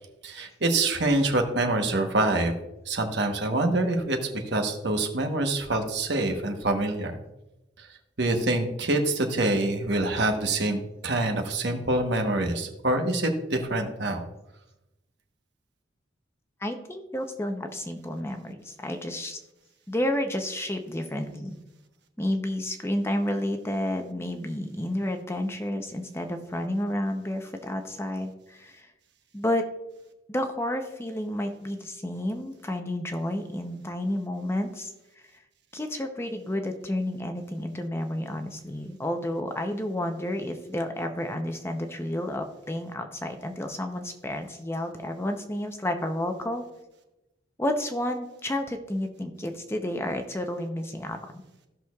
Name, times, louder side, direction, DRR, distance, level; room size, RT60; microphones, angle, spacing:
voice 1, 0.2-2.5 2.9-7.2 7.8-7.9 8.2-14.2, right 2 dB, 65° right, 4 dB, 1.1 m, -26 dB
voice 2, 16.6-19.4 19.9-21.5 22.2-28.9 29.3-29.6 30.3-34.9 35.3-35.4 35.7-46.6 47.6-51.2, left 1 dB, 15° left, 5 dB, 0.6 m, -31 dB
15.5 x 6.2 x 2.3 m, 0.97 s
head